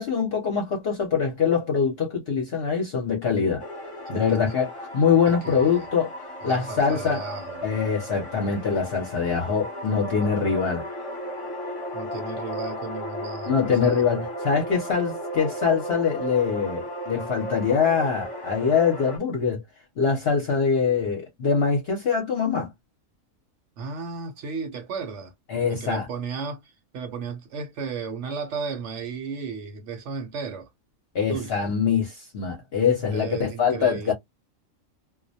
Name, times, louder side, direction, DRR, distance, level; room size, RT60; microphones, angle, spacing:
voice 1, 0.0-3.6 4.1-6.1 6.4-7.2 7.6-10.9 13.5-19.6 20.0-22.7 25.5-26.1 31.1-34.1, left 6 dB, 55° left, 0.8 m, -23 dB
sound 1, 3.6-19.2, equal, 25° left, 0.9 m, -35 dB
voice 2, 4.1-4.6 5.2-5.9 6.4-7.7 11.9-14.0 23.8-25.3 25.7-30.7 31.3-31.7 33.1-34.1, right 5 dB, 65° right, 0.9 m, -35 dB
2.3 x 2.1 x 2.6 m
omnidirectional pair, 1.4 m